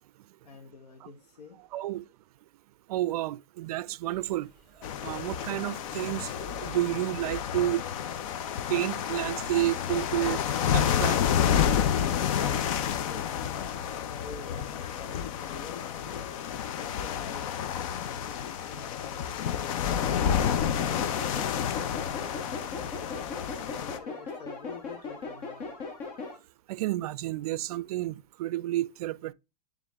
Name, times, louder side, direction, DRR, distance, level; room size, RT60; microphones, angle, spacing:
voice 1, 0.4-1.6 12.3-16.3 16.7-19.2 19.4-25.8, left 6 dB, 85° left, 1.3 m, -47 dB
voice 2, 1.7-2.0 2.9-4.5 5.0-7.8 8.7-10.4 10.7-11.2 26.7-29.3, right 15 dB, 70° right, 0.4 m, -30 dB
sound 1, 4.1-23.6, equal, ahead, 3.4 m, -56 dB
sound 2, 4.8-24.0, left 8 dB, 55° left, 0.7 m, -30 dB
sound 3, 20.0-26.4, left 4 dB, 40° left, 1.7 m, -39 dB
9.2 x 3.5 x 3.5 m
hypercardioid pair, 140°, 20 cm